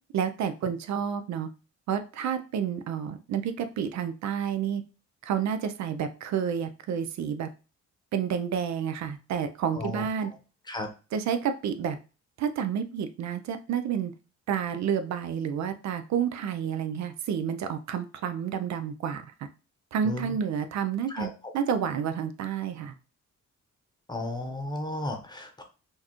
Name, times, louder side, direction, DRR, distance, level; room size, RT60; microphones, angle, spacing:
voice 1, 0.1-1.5 1.9-4.8 5.2-7.5 8.1-10.3 11.1-12.0 12.4-14.1 14.5-19.5 19.9-22.9, right 8 dB, 65° right, 9 dB, 0.5 m, -30 dB
voice 2, 9.7-10.1 10.7-10.9 20.0-20.4 21.1-21.3 24.1-25.6, left 2 dB, 15° left, 5 dB, 0.8 m, -34 dB
4.4 x 2.4 x 2.9 m, 0.33 s
cardioid pair, 90°, 30 cm